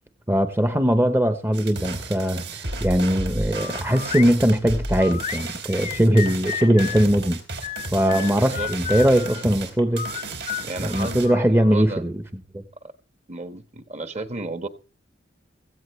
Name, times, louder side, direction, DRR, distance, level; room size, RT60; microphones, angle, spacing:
voice 1, 0.3-7.4 7.9-10.1 10.8-12.2 12.5-12.6, equal, 15° right, 0.9 m, -20 dB
sound 1, 1.5-11.3, right 2 dB, 65° right, 3.7 m, -33 dB
sound 2, 3.5-4.3 5.0-7.1 7.6-9.4 9.9-11.8, left 9 dB, 40° left, 0.6 m, -33 dB
voice 2, 8.1-8.7 10.6-12.0 13.3-14.7, right 2 dB, 35° right, 1.4 m, -33 dB
16.5 x 15.0 x 3.2 m
head